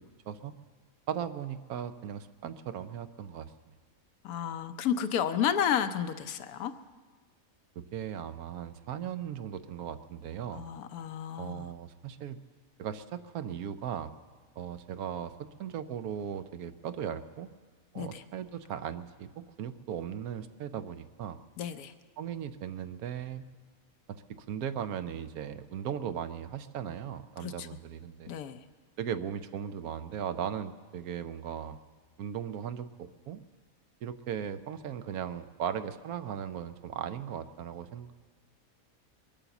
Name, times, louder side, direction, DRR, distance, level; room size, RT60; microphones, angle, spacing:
voice 1, 1.1-3.8 7.8-10.7 11.4-12.4 12.8-14.1 14.6-17.5 17.9-19.3 19.6-21.4 22.2-23.4 24.1-28.3 29.0-31.8 32.2-33.4 34.0-38.1, right 9 dB, 85° right, 11 dB, 1.2 m, -37 dB
voice 2, 4.2-6.7 10.5-11.7 17.9-18.2 21.6-21.9 27.4-27.7 28.3-28.6, left 8 dB, 85° left, 10 dB, 1.2 m, -31 dB
22.5 x 8.9 x 7.1 m, 1.5 s
omnidirectional pair, 1.5 m